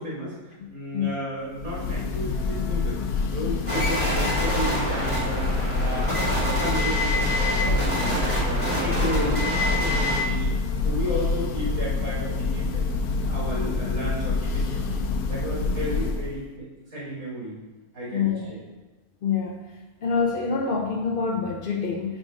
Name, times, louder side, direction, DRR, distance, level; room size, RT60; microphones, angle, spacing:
voice 1, 0.0-3.0 3.3-10.5 10.8-12.9 13.2-14.8 15.3-16.7 16.9-17.6 17.9-18.6, equal, 60° right, -6 dB, 1.9 m, -33 dB
voice 2, 0.6-1.2 18.1-18.5 19.2-19.7 20.0-22.2, left 5 dB, 65° left, 1 dB, 0.5 m, -26 dB
Church bell, 1.5-16.4, left 4 dB, 80° left, 1.1 m, -27 dB
sound 1, 3.7-10.2, equal, 20° left, 2.2 m, -26 dB
6.3 x 3.8 x 4.8 m, 1.1 s
omnidirectional pair, 1.5 m